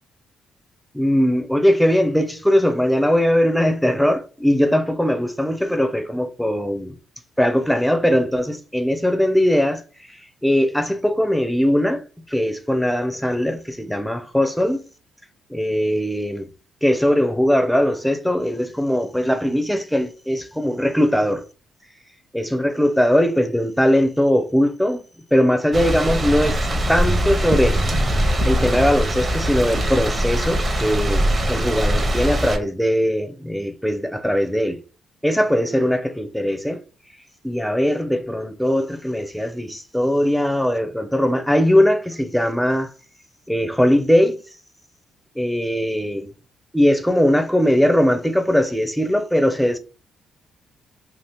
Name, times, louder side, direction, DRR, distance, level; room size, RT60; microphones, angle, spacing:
voice 1, 0.9-7.0 7.4-9.8 10.4-14.8 15.5-16.5 16.8-21.5 22.3-25.0 25.3-27.8 28.4-34.8 35.2-36.8 37.4-42.9 43.5-44.4 45.4-46.3 46.7-49.8, equal, ahead, 0.5 m, -20 dB
sound 1, 25.7-32.6, equal, 30° right, 0.8 m, -21 dB
2.8 x 2.4 x 3.4 m
cardioid pair, 90°, 0 cm